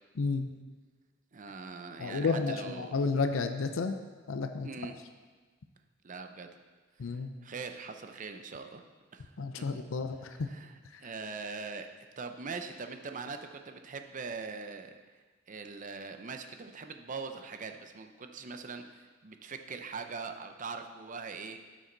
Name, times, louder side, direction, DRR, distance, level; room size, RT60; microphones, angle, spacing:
voice 1, 0.2-0.5 2.0-4.0 4.3-4.7 7.0-7.3 9.4-10.5 10.9-11.0, left 4 dB, 80° left, 7 dB, 0.6 m, -31 dB
voice 2, 1.3-3.0 4.6-4.9 6.0-6.5 7.1-8.8 9.1-9.3 10.5-10.7 11.0-11.9 12.2-14.9 15.5-21.6, right 4 dB, 40° right, 7 dB, 0.6 m, -42 dB
12.5 x 6.2 x 4.0 m, 1.4 s
head